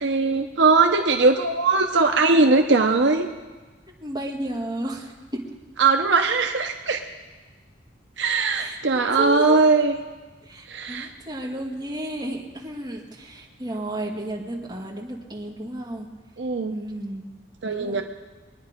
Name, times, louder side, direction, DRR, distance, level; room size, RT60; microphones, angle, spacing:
voice 1, 0.0-3.3 5.8-7.0 8.2-10.0 10.7-11.1 16.4-16.8 17.6-18.0, right 3 dB, 70° right, 4 dB, 0.8 m, -20 dB
voice 2, 4.0-5.4 8.5-9.6 10.5-16.1 16.7-17.3 17.6-18.0, right 1 dB, 25° right, -2 dB, 2.1 m, -33 dB
23.0 x 10.0 x 5.2 m, 1.3 s
head